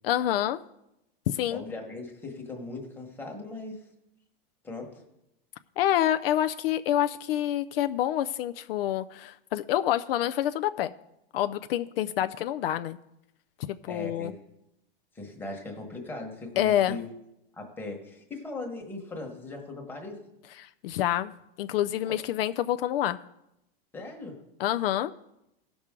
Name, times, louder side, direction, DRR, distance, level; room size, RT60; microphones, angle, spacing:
voice 1, 0.0-0.6 1.3-1.6 5.8-10.9 11.3-13.0 13.7-14.3 16.6-17.0 20.6-21.3 21.6-23.2 24.6-25.1, left 12 dB, 70° left, 10 dB, 0.5 m, -27 dB
voice 2, 1.5-3.8 4.6-5.0 13.9-14.4 15.1-17.1 17.5-20.2 22.1-22.2 23.9-24.4, left 2 dB, 5° left, 1 dB, 1.3 m, -39 dB
16.5 x 6.1 x 3.7 m, 0.85 s
supercardioid pair, 160°, 30 cm